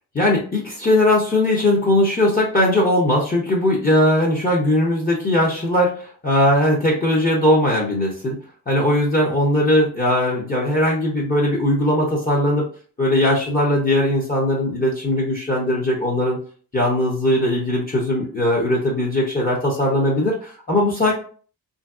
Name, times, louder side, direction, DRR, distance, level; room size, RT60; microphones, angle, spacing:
voice 1, 0.1-8.3 8.7-12.7 13.0-16.4 16.7-21.1, left 1 dB, 25° left, -4 dB, 0.6 m, -19 dB
3.0 x 2.6 x 2.3 m, 0.42 s
wide cardioid pair, 140°, 38 cm